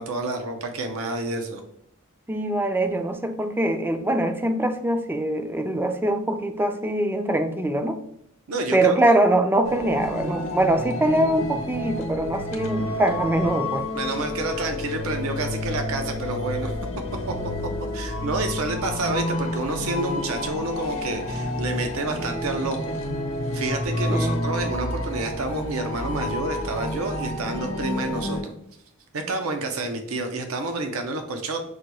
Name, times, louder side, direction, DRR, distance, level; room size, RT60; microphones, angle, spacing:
voice 1, 0.0-1.6 8.5-9.0 13.9-16.7 17.9-23.0 23.5-28.5 29.1-31.6, right 2 dB, 70° right, 5 dB, 0.6 m, -29 dB
voice 2, 2.3-8.0 8.7-13.9 24.1-24.4, right 1 dB, 10° right, 7 dB, 0.3 m, -23 dB
sound 1, 9.6-28.4, left 1 dB, 65° left, 0.8 m, -30 dB
6.3 x 2.2 x 2.9 m, 0.72 s
head